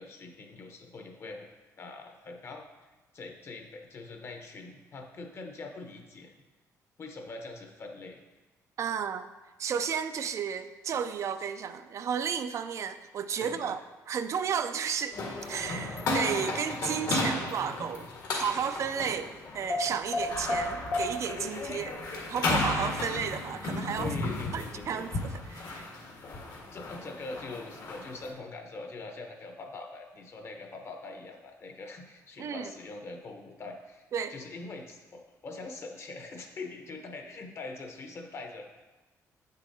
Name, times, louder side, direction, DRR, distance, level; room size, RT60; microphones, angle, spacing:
voice 1, 0.0-1.5 1.8-2.6 3.1-6.3 7.0-8.2 13.4-13.8 24.0-25.1 26.7-34.0 34.3-38.7, left 3 dB, 40° left, 3 dB, 0.9 m, -43 dB
voice 2, 8.8-9.3 9.6-13.8 14.1-15.2 15.5-24.1 24.5-25.8 32.4-32.7 34.1-34.3, right 7 dB, 50° right, 10 dB, 0.3 m, -33 dB
sound 1, 15.1-28.3, left 2 dB, 65° left, 1.6 m, -33 dB
8.1 x 6.6 x 2.8 m, 1.2 s
cardioid pair, 130°, 6 cm